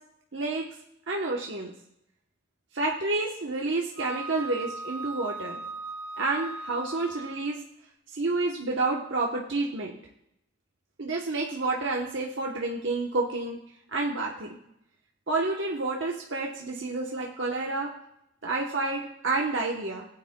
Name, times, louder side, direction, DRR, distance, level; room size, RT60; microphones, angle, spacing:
voice 1, 0.3-0.6 1.1-1.7 2.7-5.6 6.2-7.6 8.1-9.9 11.0-13.6 13.9-14.6 15.3-17.9 18.4-20.1, right 3 dB, 70° right, -1 dB, 1.0 m, -29 dB
Wind instrument woodwind instrument, 4.0-7.5, right 3 dB, 90° right, 1.1 m, -38 dB
18.0 x 9.1 x 2.2 m, 0.80 s
head